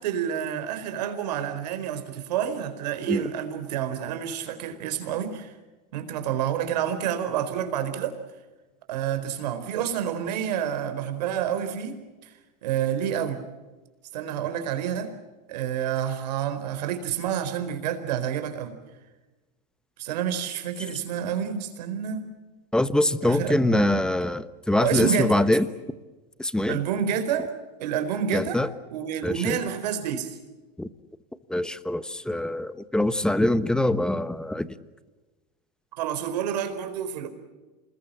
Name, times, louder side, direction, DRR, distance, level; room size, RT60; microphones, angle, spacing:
voice 1, 0.0-5.5 5.9-8.2 8.9-12.3 12.6-13.4 14.1-15.1 15.5-18.8 20.0-22.3 23.2-23.9 24.8-25.4 26.7-27.5 27.8-28.6 28.9-30.4 36.0-37.3, right 9 dB, 75° right, 9 dB, 4.4 m, -29 dB
voice 2, 22.7-25.7 26.4-26.8 28.3-28.7 29.2-29.6 30.8-30.9 31.5-34.7, left 1 dB, 5° left, 14 dB, 1.2 m, -24 dB
28.0 x 21.0 x 7.5 m, 1.2 s
supercardioid pair, 115°, 21 cm